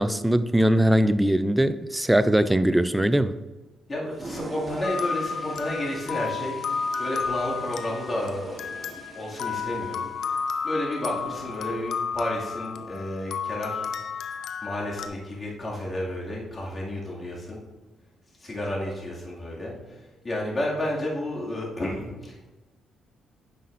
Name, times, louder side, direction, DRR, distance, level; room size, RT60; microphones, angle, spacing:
voice 1, 0.0-3.3, right 1 dB, 10° right, 0.3 m, -21 dB
voice 2, 3.9-6.6 7.0-10.1 10.6-14.0 14.6-17.6 18.4-20.0 20.2-22.5, left 1 dB, 30° left, 2.1 m, -31 dB
Toilet flush, 4.0-11.9, right 2 dB, 35° right, 1.1 m, -44 dB
sound 1, 4.8-15.1, left 6 dB, 70° left, 0.5 m, -32 dB
9.5 x 5.8 x 2.5 m
cardioid pair, 90°, 0 cm